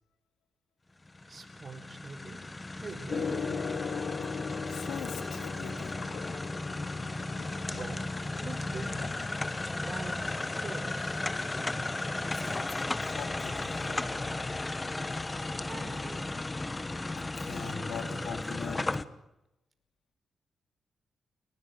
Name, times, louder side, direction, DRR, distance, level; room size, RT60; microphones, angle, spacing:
sound 1, 1.1-19.0, left 2 dB, 20° left, 1.2 m, -35 dB
voice 1, 1.3-2.4 2.8-3.7 7.7-9.1 9.8-11.2 15.6-16.3, right 4 dB, 35° right, 9 dB, 4.7 m, -44 dB
Gong, 3.1-15.1, left 5 dB, 40° left, 3.0 m, -41 dB
Gurgling / Liquid, 4.0-11.7, left 6 dB, 70° left, 3.1 m, -50 dB
voice 2, 4.7-6.0 12.3-14.1 17.2-18.9, left 7 dB, 85° left, 7 dB, 3.6 m, -42 dB
30.0 x 18.5 x 9.7 m, 0.92 s
cardioid pair, 120°, 0 cm